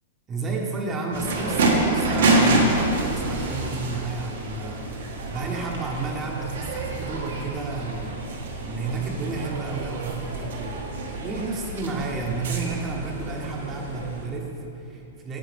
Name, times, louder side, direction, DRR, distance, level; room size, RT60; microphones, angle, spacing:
voice 1, 0.3-8.2 8.6-15.4, right 3 dB, 20° right, 0 dB, 0.9 m, -31 dB
sound 1, 1.1-14.3, right 2 dB, 85° right, 1.4 m, -27 dB
9.1 x 7.7 x 3.4 m, 2.9 s
hypercardioid pair, 150°, 0 cm